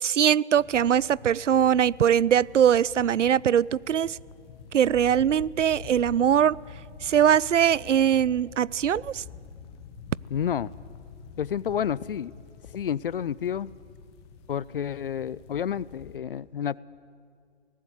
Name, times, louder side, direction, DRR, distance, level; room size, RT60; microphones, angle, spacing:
voice 1, 0.0-4.2 4.7-6.6 7.0-9.2, right 9 dB, 85° right, 0.5 m, -22 dB
sound 1, 0.6-16.2, left 6 dB, 20° left, 1.2 m, -46 dB
voice 2, 10.3-10.7 11.4-12.3 12.7-13.7 14.5-16.8, left 8 dB, 50° left, 0.4 m, -30 dB
18.5 x 15.0 x 9.4 m
figure-of-eight pair, 140°, 36 cm